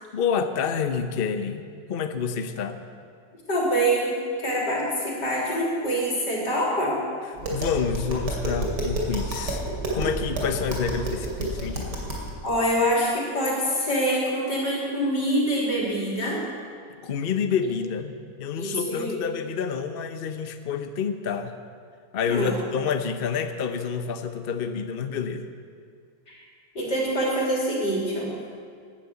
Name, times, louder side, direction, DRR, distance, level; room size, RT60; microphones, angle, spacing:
voice 1, 0.1-2.8 7.5-9.6 9.9-12.0 17.0-21.6 22.1-25.5, left 6 dB, 50° left, 8 dB, 0.6 m, -28 dB
voice 2, 3.5-4.1 4.4-7.0 12.4-16.4 18.5-19.2 22.3-22.5 26.3-26.4 26.8-28.3, equal, 70° left, -3 dB, 3.9 m, -25 dB
Tap, 7.4-12.3, right 1 dB, 70° right, 3.2 m, -30 dB
12.5 x 10.5 x 8.4 m, 2.2 s
omnidirectional pair, 1.9 m